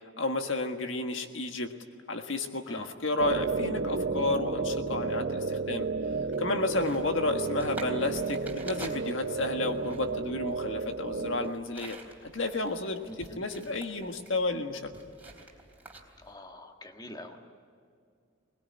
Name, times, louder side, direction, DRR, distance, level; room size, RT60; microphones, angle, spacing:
voice 1, 0.2-1.7 2.1-5.9 6.4-14.9, left 2 dB, 65° left, 5 dB, 1.6 m, -32 dB
sound 1, 3.2-11.5, right 4 dB, 50° right, 0.7 m, -32 dB
sound 2, 6.0-16.3, right 2 dB, 10° right, 3.6 m, -49 dB
voice 2, 16.2-17.5, left 1 dB, 20° left, 4 dB, 1.6 m, -45 dB
22.0 x 21.0 x 9.9 m, 2.2 s
head